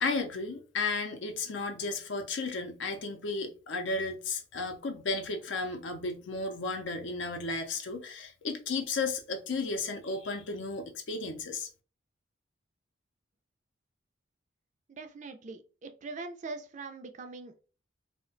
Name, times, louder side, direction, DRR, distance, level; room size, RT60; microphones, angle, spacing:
voice 1, 0.0-11.7, left 3 dB, 65° left, 0.5 m, -34 dB
voice 2, 14.9-17.6, right 3 dB, 40° right, 0.4 m, -42 dB
2.4 x 2.1 x 3.8 m
head